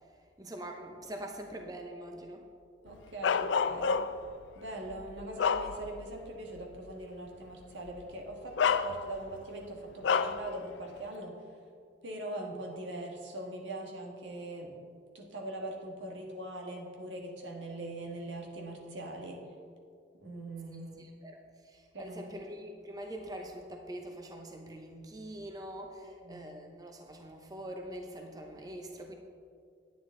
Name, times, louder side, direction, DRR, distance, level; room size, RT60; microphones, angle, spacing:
voice 1, 0.4-2.5 21.0-29.1, right 1 dB, 20° right, 3 dB, 0.7 m, -44 dB
voice 2, 2.8-4.0 4.5-11.3 12.0-14.8 15.1-19.4 20.1-21.1 21.9-22.5 26.0-26.4, right 1 dB, 85° right, 0 dB, 1.6 m, -42 dB
Bark, 3.2-4.3 4.9-6.1 6.6-6.7 7.9-8.0 8.6-9.4 10.0-10.5, left 6 dB, 80° left, 0.4 m, -29 dB
10.0 x 9.3 x 3.8 m, 2.2 s
head